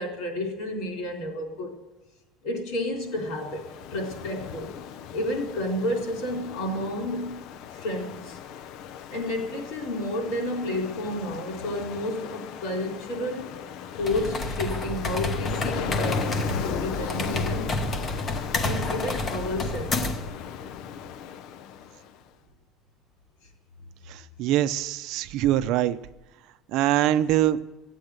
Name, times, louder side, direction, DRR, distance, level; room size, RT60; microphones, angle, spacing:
voice 1, 0.0-1.7 2.4-3.6 3.9-4.7 5.1-7.4 7.7-8.4 9.1-13.6 14.0-17.8 18.6-20.0, left 1 dB, 75° left, 2 dB, 3.9 m, -31 dB
Ocean, 3.1-22.2, left 8 dB, 55° left, 0.5 m, -37 dB
sound 1, 14.0-20.3, left 2 dB, 25° left, 0.8 m, -30 dB
voice 2, 24.1-26.0 26.7-27.6, right 13 dB, 60° right, 11 dB, 0.6 m, -23 dB
14.5 x 8.4 x 8.0 m, 1.1 s
cardioid pair, 170°, 0 cm